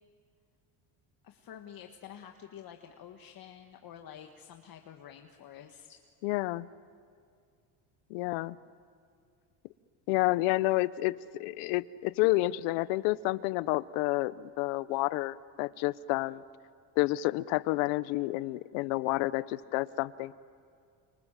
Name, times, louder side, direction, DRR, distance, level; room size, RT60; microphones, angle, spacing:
voice 1, 1.2-6.3, left 9 dB, 45° left, 4 dB, 1.7 m, -49 dB
voice 2, 6.2-6.7 8.1-8.6 10.1-16.4 17.0-20.3, left 19 dB, 85° left, 17 dB, 0.9 m, -29 dB
29.5 x 27.0 x 7.5 m, 2.3 s
cardioid pair, 115°, 48 cm